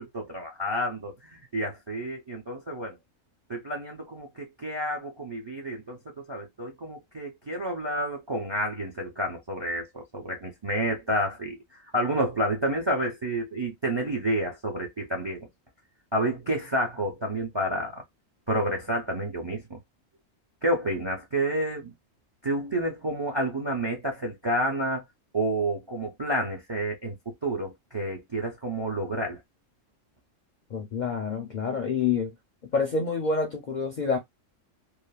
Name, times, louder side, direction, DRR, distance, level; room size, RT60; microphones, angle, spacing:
voice 1, 0.0-3.0 3.5-15.5 16.1-18.0 18.5-19.8 20.6-21.9 22.4-25.0 25.3-29.4, right 1 dB, 35° right, 0.4 m, -30 dB
voice 2, 30.7-32.3 32.7-34.2, left 5 dB, 55° left, 0.5 m, -27 dB
3.1 x 2.0 x 2.2 m
omnidirectional pair, 1.3 m